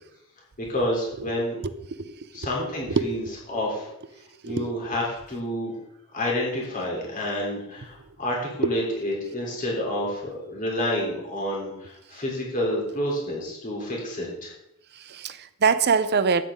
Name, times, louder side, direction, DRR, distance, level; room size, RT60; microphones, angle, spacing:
voice 1, 0.7-1.6 2.3-3.9 4.4-5.7 6.1-14.5, left 1 dB, 40° left, -3 dB, 3.3 m, -29 dB
voice 2, 2.6-3.3 4.4-4.7 8.6-8.7 15.0-16.4, right 5 dB, 50° right, 13 dB, 0.7 m, -24 dB
13.0 x 9.3 x 3.7 m, 0.82 s
head